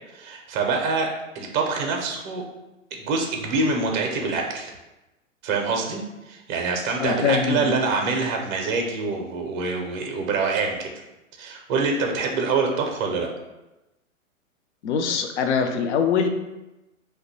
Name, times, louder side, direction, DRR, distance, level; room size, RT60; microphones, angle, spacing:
voice 1, 0.1-1.1 1.3-2.4 2.9-4.7 5.4-10.9 11.4-13.3, right 4 dB, 35° right, 2 dB, 0.5 m, -25 dB
voice 2, 7.0-7.9 14.8-16.3, left 6 dB, 60° left, 6 dB, 0.5 m, -23 dB
2.6 x 2.2 x 4.0 m, 0.99 s
hypercardioid pair, 120°, 40 cm